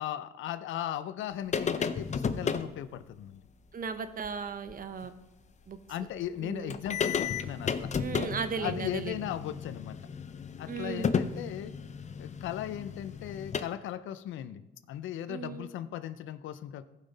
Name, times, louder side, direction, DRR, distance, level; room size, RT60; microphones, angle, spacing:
voice 1, 0.0-3.4 5.9-7.9 8.6-10.0 10.6-11.7 12.2-16.9, left 11 dB, 85° left, 13 dB, 0.5 m, -37 dB
sound 1, 1.5-2.7 4.2-4.3 4.7-4.8 6.4-6.5 6.7-13.6, left 6 dB, 35° left, 0.6 m, -33 dB
voice 2, 3.7-5.1 5.7-5.8 6.4-6.8 8.0-9.3 10.7-11.2 15.3-15.7, right 5 dB, 45° right, 10 dB, 0.9 m, -36 dB
15.0 x 5.6 x 4.1 m, 0.99 s
cardioid pair, 95°, 20 cm